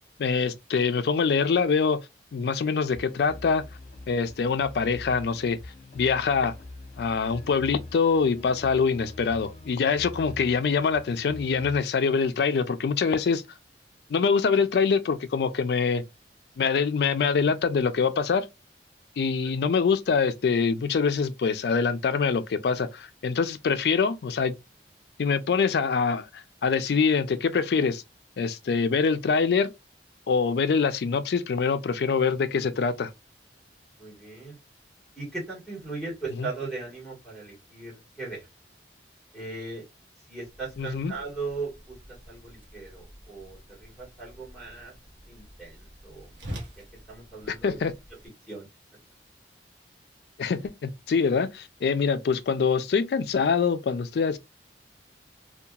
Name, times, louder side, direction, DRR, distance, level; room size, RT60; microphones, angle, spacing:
voice 1, 0.2-2.0 2.3-3.6 4.1-5.6 5.9-6.5 7.0-13.4 14.1-16.0 16.6-18.5 19.2-24.6 25.2-28.0 28.4-29.7 30.3-33.1 36.4-36.5 40.8-41.1 47.5-47.9 50.4-54.4, left 5 dB, 65° left, 0.3 m, -24 dB
sound 1, 2.8-11.8, left 2 dB, 45° left, 0.8 m, -44 dB
voice 2, 34.0-34.6 35.2-37.9 38.2-38.4 39.3-39.8 40.3-41.7 42.3-44.9 45.3-46.3 47.1-47.8 48.5-48.7, right 3 dB, ahead, 1.4 m, -38 dB
Whoosh swoosh swish, 40.5-48.3, equal, 70° right, 0.8 m, -46 dB
2.8 x 2.3 x 2.2 m
head